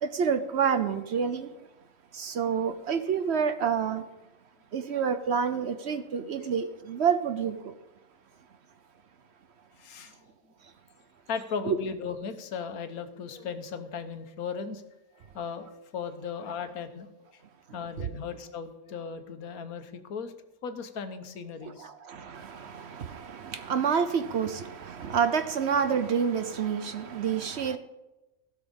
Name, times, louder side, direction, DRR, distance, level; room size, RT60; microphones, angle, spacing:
voice 1, 0.0-1.5 2.1-4.0 4.7-7.7 11.7-11.8 18.0-18.1 21.6-27.8, right 7 dB, 55° right, 0.9 m, -28 dB
voice 2, 9.8-10.1 11.3-14.8 15.3-17.1 17.7-20.3 20.6-21.9, left 6 dB, 90° left, 1.4 m, -37 dB
16.5 x 6.2 x 5.2 m
omnidirectional pair, 1.5 m